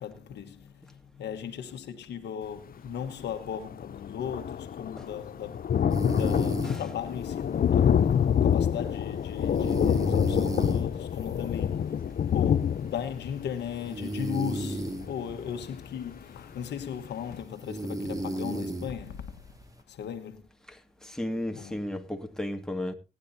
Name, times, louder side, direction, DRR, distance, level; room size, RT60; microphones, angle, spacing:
voice 1, 0.0-8.1 8.4-12.0 12.3-19.5 19.9-20.4 21.3-21.9, left 8 dB, 90° left, 1.4 m, -37 dB
Thunder, 3.2-3.3 3.5-16.1 16.6-16.7 17.0-17.1, left 8 dB, 60° left, 0.6 m, -27 dB
sound 1, 5.9-19.8, right 1 dB, 20° right, 2.8 m, -37 dB
voice 2, 21.0-22.9, left 1 dB, 5° left, 2.1 m, -34 dB
19.0 x 10.5 x 2.8 m
cardioid pair, 60°, 17 cm